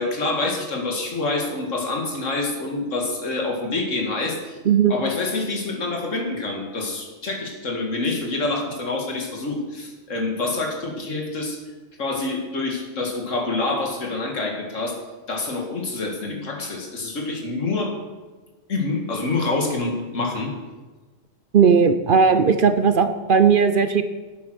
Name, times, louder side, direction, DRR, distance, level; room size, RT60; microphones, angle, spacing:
voice 1, 0.0-4.6 4.9-11.6 12.0-15.0 15.3-17.9 18.7-20.5, left 3 dB, 85° left, 2 dB, 2.2 m, -26 dB
voice 2, 21.5-24.0, right 6 dB, 50° right, 10 dB, 0.7 m, -17 dB
10.5 x 9.4 x 6.1 m, 1.3 s
omnidirectional pair, 1.3 m